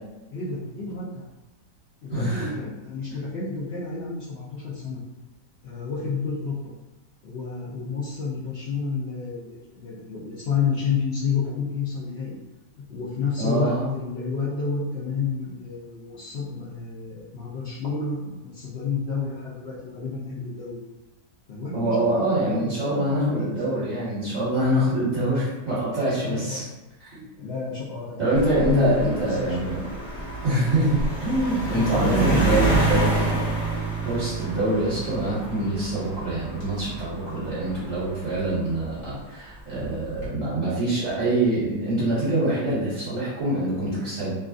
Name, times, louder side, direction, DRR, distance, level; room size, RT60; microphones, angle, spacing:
voice 1, 0.3-1.2 2.0-5.0 5.6-6.5 7.2-12.4 12.9-20.8 21.5-23.8 26.2-26.6 27.4-29.6 31.7-32.9, left 4 dB, 75° left, -9 dB, 0.5 m, -29 dB
voice 2, 2.1-2.5 13.4-13.9 21.7-26.6 27.0-27.2 28.2-29.9 30.4-33.3 34.0-44.3, right 1 dB, 25° right, -12 dB, 1.6 m, -25 dB
sound 1, 28.3-39.1 39.8-40.3, right 3 dB, 40° left, 1.3 m, -28 dB
3.0 x 2.4 x 2.5 m, 1.0 s
omnidirectional pair, 1.8 m